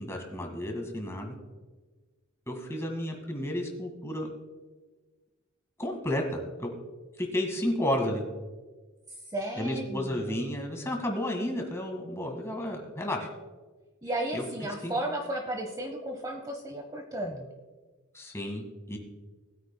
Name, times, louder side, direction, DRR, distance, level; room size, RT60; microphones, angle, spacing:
voice 1, 0.0-1.3 2.5-4.3 5.8-6.7 7.2-8.2 9.6-13.3 14.3-14.4 14.8-14.9 18.1-19.0, left 1 dB, 15° left, 2 dB, 1.8 m, -32 dB
voice 2, 9.2-10.4 14.0-17.5, right 1 dB, 20° right, 3 dB, 0.8 m, -34 dB
20.0 x 9.1 x 2.2 m, 1.3 s
head